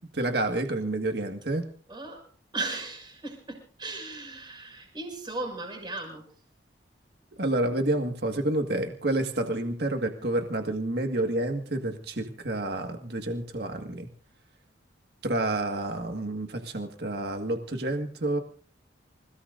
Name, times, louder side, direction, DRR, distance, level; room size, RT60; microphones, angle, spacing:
voice 1, 0.1-1.6 7.4-14.1 15.2-18.4, right 2 dB, 55° right, 5 dB, 1.8 m, -29 dB
voice 2, 1.9-2.2 2.5-6.3, right 2 dB, 25° right, 3 dB, 6.3 m, -36 dB
28.0 x 17.5 x 2.6 m, 0.41 s
head